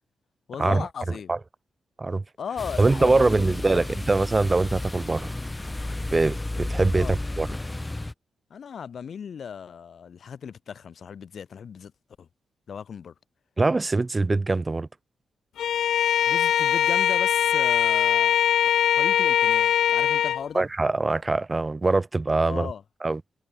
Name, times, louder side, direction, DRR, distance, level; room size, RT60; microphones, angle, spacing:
voice 1, 0.5-1.3 2.4-3.9 6.9-7.2 8.5-11.9 12.2-12.3 12.7-13.1 16.3-18.4 18.9-20.7 22.5-22.8, left 7 dB, 70° left, 1.8 m, -36 dB
sound 1, 2.6-8.1, left 2 dB, 20° left, 0.4 m, -32 dB
voice 2, 2.8-5.3 6.1-7.5 13.6-14.9 20.5-22.7 23.0-23.2, right 3 dB, 30° right, 0.8 m, -23 dB
Bowed string instrument, 15.6-20.5, left 10 dB, 85° left, 0.3 m, -21 dB
cardioid pair, 65°, 0 cm